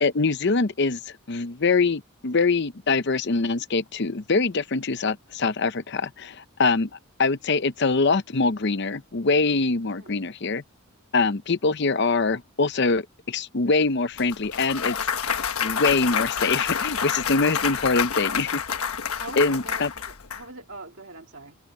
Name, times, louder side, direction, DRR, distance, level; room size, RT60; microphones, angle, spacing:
voice 1, 0.0-6.9 7.2-10.6 11.1-15.0 15.6-18.6 19.4-19.9, left 4 dB, 50° left, 0.7 m, -24 dB
voice 2, 9.9-10.3 18.1-18.5 18.9-21.6, right 3 dB, 65° right, 2.1 m, -43 dB
Clapping / Cheering / Applause, 14.2-20.4, left 7 dB, 90° left, 1.2 m, -28 dB
head